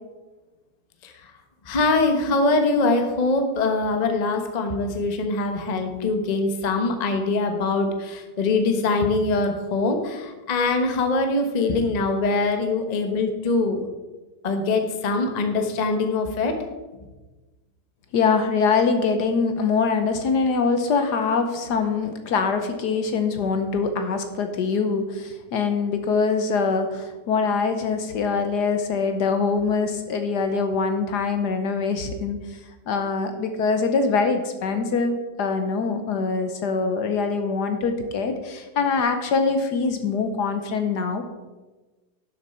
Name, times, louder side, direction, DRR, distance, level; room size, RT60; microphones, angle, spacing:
voice 1, 1.7-13.8 14.4-16.5, left 3 dB, 30° left, 5 dB, 0.8 m, -23 dB
voice 2, 18.1-32.4 32.9-41.2, left 4 dB, 65° left, 7 dB, 1.3 m, -23 dB
11.5 x 7.4 x 4.3 m, 1.2 s
omnidirectional pair, 2.1 m